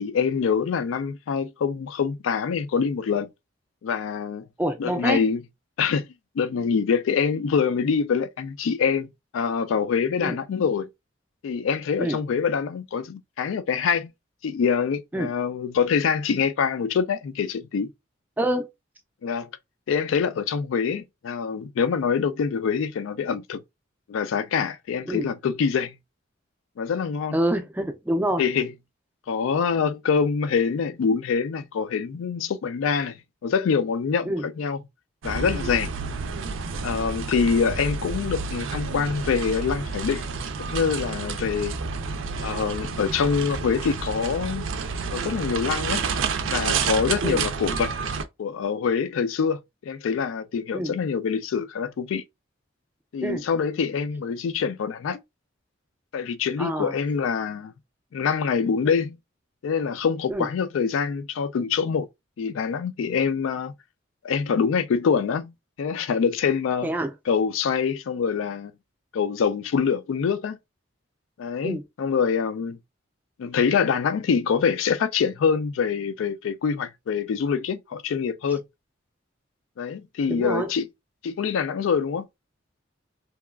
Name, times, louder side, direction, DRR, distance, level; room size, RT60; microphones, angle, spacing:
voice 1, 0.0-3.3 3.8-4.4 4.8-5.4 5.8-6.1 6.4-9.1 9.3-10.9 11.4-14.1 14.4-17.9 19.2-19.5 19.9-23.6 24.1-25.9 26.8-27.4 28.4-28.7 29.3-33.2 33.4-34.8 35.2-35.9 36.8-40.2 40.6-41.8 42.4-44.7 45.1-46.0 46.5-47.9 48.4-52.2 53.1-55.2 56.1-57.7 58.1-59.2 59.6-62.1 62.4-63.7 64.2-65.5 65.8-66.9 67.3-68.7 69.1-70.6 71.4-72.8 73.4-78.6 79.8-80.9 81.2-82.3, left 6 dB, 85° left, 0.3 m, -25 dB
voice 2, 4.6-5.2 10.2-10.4 12.0-12.2 15.1-15.3 18.4-18.7 25.1-25.3 27.3-28.4 34.3-34.5 47.2-47.4 50.7-50.9 53.2-53.4 56.6-56.9 60.3-60.5 66.8-67.1 71.6-71.8 80.3-80.7, right 1 dB, 10° right, 0.4 m, -26 dB
sound 1, 35.2-48.2, right 5 dB, 80° right, 0.4 m, -30 dB
2.9 x 2.3 x 2.2 m
head